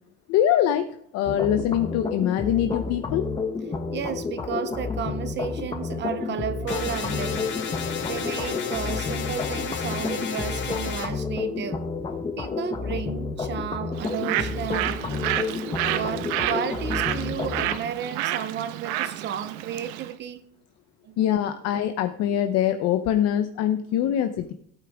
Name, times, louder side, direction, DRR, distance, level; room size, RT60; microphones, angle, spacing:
voice 1, 0.3-0.9 1.1-3.2 21.2-24.5, left 10 dB, 50° left, 8 dB, 0.7 m, -23 dB
sound 1, 1.3-17.8, left 4 dB, 15° left, 0.9 m, -30 dB
voice 2, 3.9-7.6 8.0-11.8 12.4-15.3 15.9-20.4 21.0-21.3 24.0-24.1, right 9 dB, 35° right, 12 dB, 0.6 m, -33 dB
sound 2, 6.7-11.1, left 7 dB, 35° left, 1.6 m, -33 dB
Bird, 13.9-20.1, right 13 dB, 90° right, 1.1 m, -30 dB
17.0 x 8.6 x 3.5 m, 0.67 s
cardioid pair, 165°, 34 cm